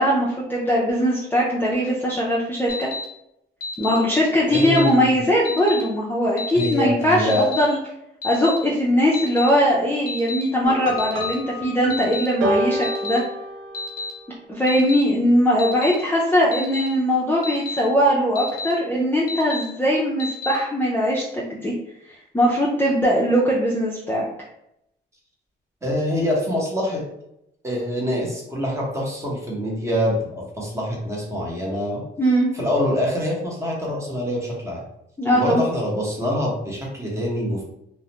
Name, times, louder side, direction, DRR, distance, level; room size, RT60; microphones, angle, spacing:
voice 1, 0.0-2.9 3.8-7.8 8.2-13.2 14.5-21.7 22.3-24.3 32.2-32.5 35.2-35.6, equal, 10° left, -5 dB, 0.4 m, -20 dB
Alarm, 2.7-3.0 3.6-4.0 4.5-4.9 5.4-5.8 6.4-6.7 7.3-7.6 8.2-8.6 9.1-9.5 10.1-10.4 11.0-11.3 11.9-12.3 12.8-13.2 13.7-14.1 14.7-15.0 15.6-15.9 16.5-16.9 17.4-17.8 18.3-18.7 19.3-19.6 20.2-20.6, left 2 dB, 45° left, 0.8 m, -30 dB
voice 2, 4.5-5.1 6.5-7.5 25.8-27.0 27.6-32.0 32.5-34.8 35.3-37.6, equal, 15° right, -3 dB, 0.9 m, -25 dB
sound 1, 10.6-14.0, equal, 75° right, 0.6 m, -28 dB
2.4 x 2.0 x 2.8 m, 0.80 s
cardioid pair, 90°, 20 cm